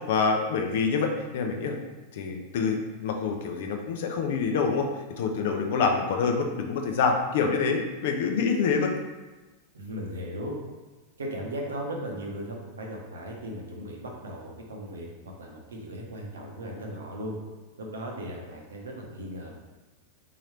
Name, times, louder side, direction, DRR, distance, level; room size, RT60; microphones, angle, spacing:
voice 1, 0.0-1.8 2.1-4.9 5.2-8.9, left 5 dB, 55° left, 3 dB, 0.6 m, -26 dB
voice 2, 9.7-10.6 11.2-15.1 15.4-17.4 17.8-19.5, equal, 70° right, 0 dB, 0.9 m, -37 dB
4.2 x 3.8 x 3.2 m, 1.2 s
figure-of-eight pair, 90°, 0 cm